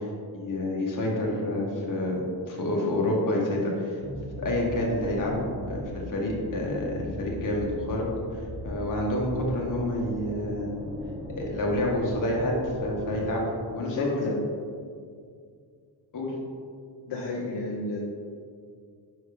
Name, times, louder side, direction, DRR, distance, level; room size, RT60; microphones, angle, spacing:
voice 1, 0.3-2.2 2.5-3.9 4.4-8.0 8.6-10.7 11.4-12.6 12.8-13.4 13.7-14.2 16.1-16.3, left 1 dB, 45° left, -2 dB, 1.3 m, -28 dB
sound 1, 4.0-13.3, equal, 10° right, 0.8 m, -39 dB
voice 2, 13.8-14.5 14.9-15.0 17.1-18.1, left 2 dB, 65° left, -4 dB, 0.9 m, -31 dB
5.5 x 5.1 x 3.8 m, 2.2 s
wide cardioid pair, 130°, 44 cm